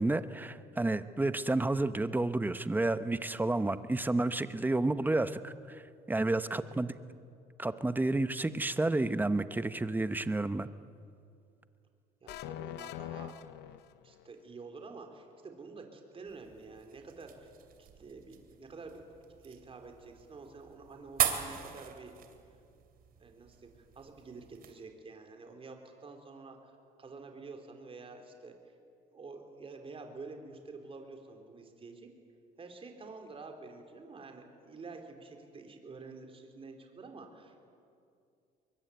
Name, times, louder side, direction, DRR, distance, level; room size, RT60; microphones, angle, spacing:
voice 1, 0.0-5.8 6.1-6.9 7.6-10.7, right 2 dB, 10° right, 12 dB, 1.0 m, -30 dB
voice 2, 6.5-6.8 12.2-13.4 14.0-17.5 17.8-19.0 19.4-22.1 23.2-23.7 24.0-26.7 27.0-28.6 29.1-32.1 32.6-37.6, right 4 dB, 35° right, 4 dB, 3.9 m, -48 dB
sound 1, 12.3-14.3, left 13 dB, 85° left, 0.9 m, -43 dB
sound 2, 16.3-24.7, right 9 dB, 60° right, 2.9 m, -40 dB
22.5 x 22.5 x 9.4 m, 2.4 s
cardioid pair, 110°, 17 cm